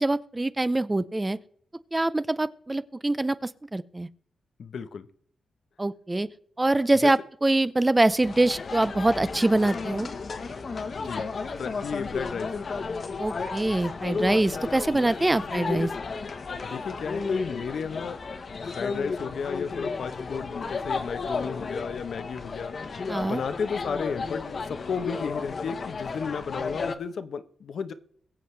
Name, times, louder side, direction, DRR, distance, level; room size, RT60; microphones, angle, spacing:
voice 1, 0.0-1.4 1.9-4.1 5.8-6.3 6.6-10.1 13.2-15.9 23.1-23.4, right 2 dB, 20° right, 15 dB, 0.5 m, -24 dB
voice 2, 4.6-5.1 7.0-7.1 11.0-11.2 11.6-12.5 16.6-18.2 18.5-27.9, left 6 dB, 70° left, 11 dB, 1.0 m, -34 dB
sound 1, 8.2-27.0, left 4 dB, 50° left, 1.2 m, -33 dB
22.0 x 7.7 x 3.3 m, 0.63 s
cardioid pair, 95°, 0 cm